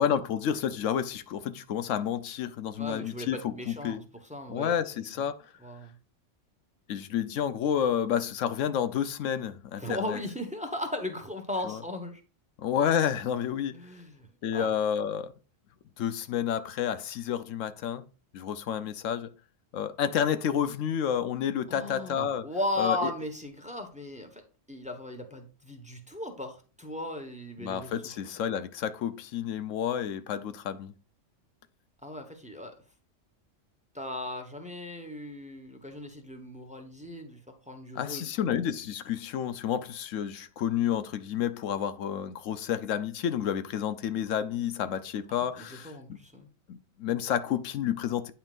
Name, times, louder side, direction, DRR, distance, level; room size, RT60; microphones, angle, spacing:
voice 1, 0.0-4.0 4.5-5.4 6.9-10.2 11.6-11.8 12.6-13.8 14.4-15.3 16.0-18.0 18.3-19.3 19.7-22.5 22.8-23.1 27.6-30.9 37.9-46.2 46.7-48.3, left 9 dB, 85° left, 1.0 m, -30 dB
voice 2, 2.8-4.0 4.3-5.1 5.6-5.9 9.8-12.2 13.7-14.3 14.5-14.7 21.7-24.4 24.7-27.9 32.0-32.7 33.9-37.4 37.7-38.6 45.6-46.5, left 1 dB, 5° right, 1.1 m, -37 dB
9.0 x 5.7 x 2.5 m
omnidirectional pair, 1.3 m